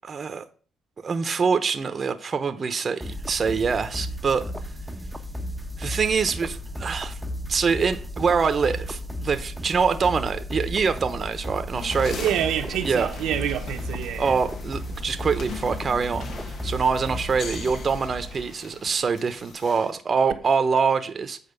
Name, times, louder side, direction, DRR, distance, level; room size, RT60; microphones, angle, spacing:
voice 1, 0.1-0.4 1.0-4.4 5.8-7.2 7.5-12.3 12.8-13.1 14.2-21.4, right 5 dB, 40° right, 0.9 m, -25 dB
sound 1, 3.0-18.5, equal, 5° right, 1.0 m, -34 dB
sound 2, 11.7-19.9, left 5 dB, 60° left, 1.4 m, -40 dB
voice 2, 12.2-14.4, right 10 dB, 85° right, 1.0 m, -27 dB
8.9 x 4.4 x 6.7 m
cardioid pair, 90°, 0 cm